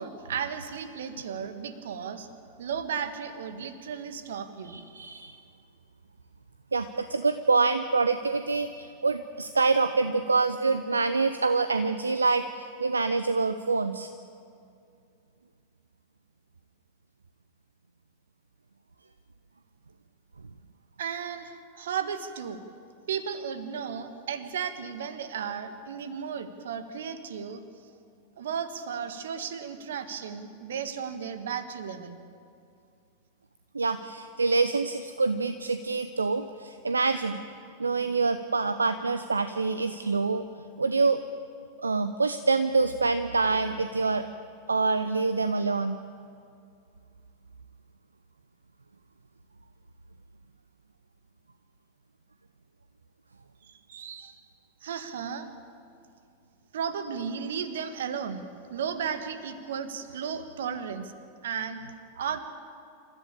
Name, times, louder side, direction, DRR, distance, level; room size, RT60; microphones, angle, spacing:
voice 1, 0.0-2.3 2.6-4.8 21.0-22.6 23.1-27.6 28.4-32.2 53.6-54.4 54.8-55.5 56.7-58.4 58.7-61.1 61.4-61.8 62.1-62.4, right 7 dB, 60° right, 10 dB, 1.6 m, -34 dB
voice 2, 4.6-5.4 6.7-14.1 33.7-37.4 37.8-40.4 40.8-41.2 41.8-44.3 44.7-46.0, right 4 dB, 75° right, 11 dB, 0.7 m, -26 dB
27.5 x 14.0 x 8.6 m, 2.4 s
figure-of-eight pair, 90°, 0 cm